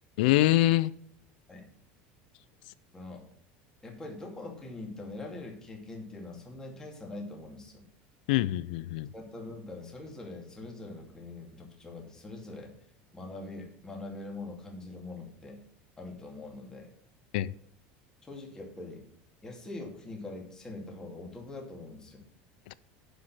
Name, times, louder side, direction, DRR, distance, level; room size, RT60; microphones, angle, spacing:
voice 1, 0.2-0.9 8.3-9.1 17.3-17.5 22.7-22.8, left 16 dB, 80° left, 0.4 m, -24 dB
voice 2, 3.8-7.9 9.1-12.7 13.1-15.6 16.0-16.9 18.2-19.0 19.4-22.3, left 2 dB, 15° left, 2.5 m, -43 dB
11.0 x 5.2 x 6.1 m
supercardioid pair, 140°, 5 cm